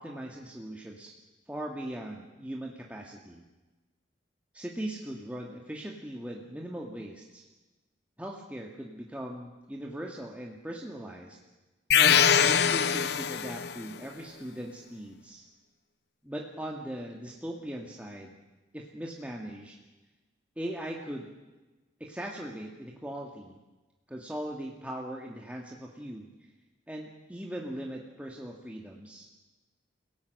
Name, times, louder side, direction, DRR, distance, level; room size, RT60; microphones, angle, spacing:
voice 1, 0.0-1.1 1.5-3.4 4.5-7.4 8.2-11.4 11.9-15.4 16.2-18.4 18.7-19.8 20.5-21.3 22.0-23.6 24.1-26.3 26.9-29.3, right 1 dB, 5° right, -1 dB, 1.7 m, -39 dB
sound 1, 11.9-13.8, left 8 dB, 60° left, 0.8 m, -23 dB
29.5 x 17.5 x 6.5 m, 1.2 s
head